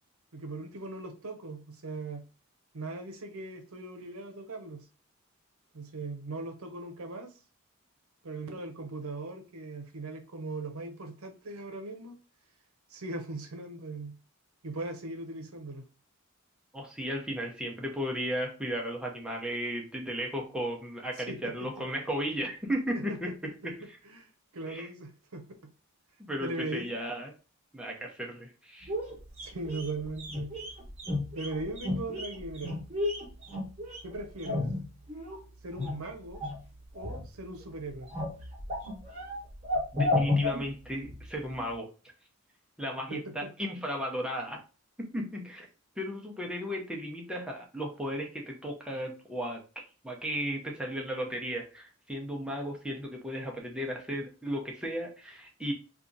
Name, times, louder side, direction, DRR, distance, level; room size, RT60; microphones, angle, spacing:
voice 1, 0.3-2.2 2.7-4.8 5.7-7.3 8.2-12.2 12.9-14.2 14.6-15.9 21.3-21.7 22.9-23.2 24.1-24.3 24.5-25.7 26.4-26.9 29.4-30.5 31.3-32.8 34.0-34.7 35.6-36.4 36.9-38.1 43.1-43.5, right 2 dB, 90° right, 0.7 m, -39 dB
voice 2, 16.7-24.0 24.7-24.9 26.2-27.3 27.7-28.9 39.9-41.9 42.8-44.6 45.0-45.7 46.0-55.7, equal, 5° right, 0.7 m, -35 dB
sound 1, 28.8-35.4 35.7-36.6 36.9-37.6 37.9-41.3 41.5-41.6, left 2 dB, 30° right, 1.1 m, -33 dB
2.8 x 2.4 x 3.8 m
head